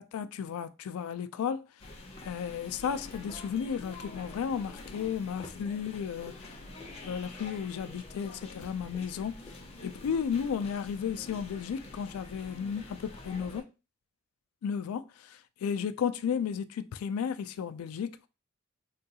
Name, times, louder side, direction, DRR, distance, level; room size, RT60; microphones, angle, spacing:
voice 1, 0.1-1.6 2.2-6.3 7.0-9.3 9.8-13.6 14.6-18.3, left 7 dB, 90° left, 0.3 m, -33 dB
sound 1, 1.8-13.6, left 2 dB, 30° left, 0.5 m, -47 dB
3.6 x 2.3 x 2.7 m
head